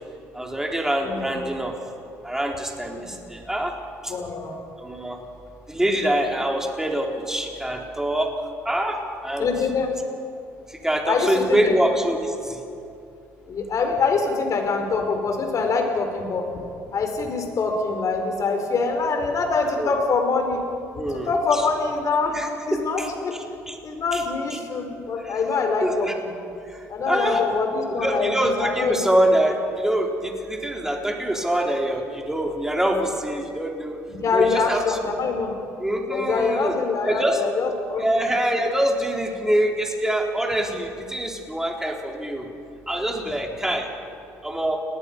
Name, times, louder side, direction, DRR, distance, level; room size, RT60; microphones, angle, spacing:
voice 1, 0.3-1.7 2.2-3.7 4.0-4.1 4.8-5.2 5.7-8.3 8.6-9.5 10.7-12.6 19.8-19.9 20.9-21.6 22.3-23.1 23.7-23.8 24.1-24.2 24.5-24.6 25.2-25.3 25.8-26.1 26.7-27.4 27.9-34.0 34.3-35.0 35.8-36.7 37.0-37.4 38.0-42.5 42.9-43.9 44.4-44.8, right 1 dB, 5° right, 1 dB, 4.3 m, -25 dB
voice 2, 1.0-1.3 4.1-4.5 9.4-9.9 11.1-11.7 13.5-16.5 16.9-20.6 21.1-22.4 22.7-23.3 23.8-26.3 26.9-29.0 34.1-35.5 36.1-38.3, left 4 dB, 50° left, 4 dB, 5.0 m, -24 dB
30.0 x 19.5 x 5.6 m, 2.6 s
hypercardioid pair, 60°, 7 cm